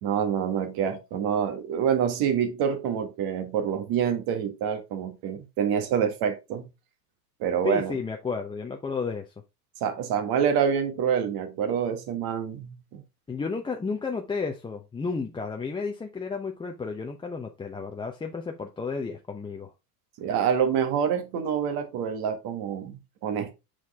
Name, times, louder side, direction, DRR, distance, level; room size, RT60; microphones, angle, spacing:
voice 1, 0.0-6.6 7.4-7.9 9.8-13.0 20.2-23.5, right 8 dB, 50° right, 1.7 m, -27 dB
voice 2, 7.6-9.3 13.3-19.7, left 5 dB, 10° left, 0.7 m, -32 dB
6.4 x 4.7 x 3.6 m
hypercardioid pair, 100°, 48 cm